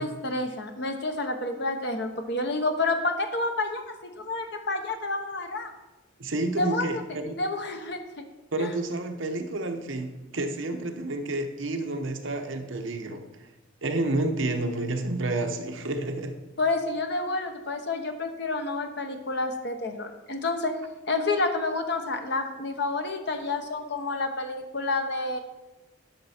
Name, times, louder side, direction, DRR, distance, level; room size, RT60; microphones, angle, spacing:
voice 1, 0.0-5.7 6.6-7.0 7.4-8.2 8.6-8.7 16.6-20.8 21.1-25.4, left 2 dB, 55° left, 5 dB, 1.0 m, -29 dB
voice 2, 6.2-7.4 8.5-13.5 13.8-16.3, right 2 dB, 65° right, 5 dB, 1.0 m, -30 dB
11.5 x 6.2 x 4.3 m, 1.1 s
head